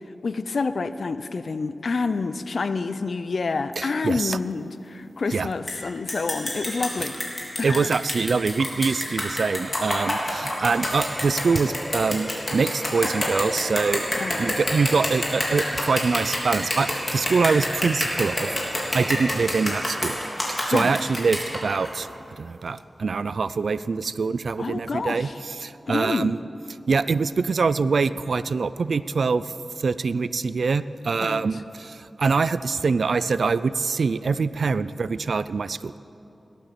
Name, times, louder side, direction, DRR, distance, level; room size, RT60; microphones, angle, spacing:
voice 1, 0.2-7.2 7.6-7.9 14.1-14.4 20.7-20.9 24.6-25.4 25.9-26.3 31.2-31.4, left 4 dB, 65° left, 12 dB, 0.6 m, -28 dB
voice 2, 3.8-4.4 5.3-5.5 7.6-18.6 18.9-20.2 20.5-26.4 26.9-35.9, right 4 dB, 75° right, 15 dB, 0.4 m, -24 dB
sound 1, 5.7-5.8 6.1-21.9, left 1 dB, 25° left, 3.5 m, -27 dB
17.5 x 12.0 x 6.8 m, 3.0 s
wide cardioid pair, 90°, 0 cm